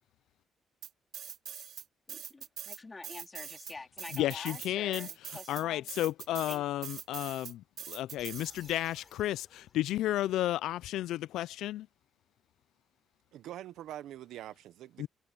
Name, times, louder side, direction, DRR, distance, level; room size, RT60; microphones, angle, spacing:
sound 1, 0.8-1.8 2.1-8.9, right 9 dB, 65° right, 2.6 m, -43 dB
voice 1, 2.1-6.0 6.5-6.6, left 3 dB, 25° left, 2.4 m, -47 dB
voice 2, 4.1-5.1 5.5-11.9 15.0-15.1, left 14 dB, 85° left, 0.4 m, -32 dB
sound 2, 8.2-10.3, left 6 dB, 45° left, 7.5 m, -58 dB
voice 3, 13.3-15.1, right 12 dB, 80° right, 1.0 m, -44 dB
cardioid pair, 90°, 0 cm